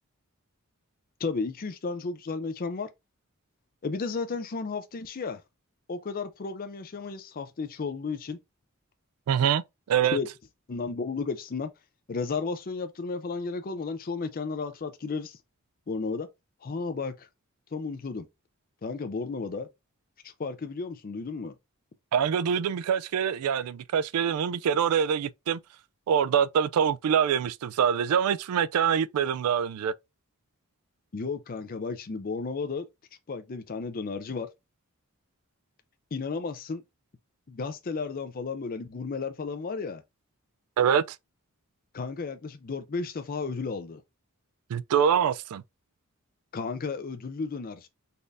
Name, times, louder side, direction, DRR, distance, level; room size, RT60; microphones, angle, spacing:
voice 1, 1.2-2.9 3.8-5.4 5.9-8.4 10.1-10.3 10.7-11.7 12.1-15.4 15.9-16.3 16.6-17.3 17.7-18.3 18.8-19.7 20.2-21.6 31.1-32.8 33.3-34.5 36.1-36.8 37.5-40.0 41.9-44.0 46.5-47.9, left 4 dB, 40° left, 0.5 m, -33 dB
voice 2, 9.3-9.6 9.9-10.2 22.1-25.6 26.1-29.9 40.8-41.2 44.7-45.6, right 8 dB, 90° right, 0.3 m, -25 dB
4.2 x 2.6 x 3.4 m
head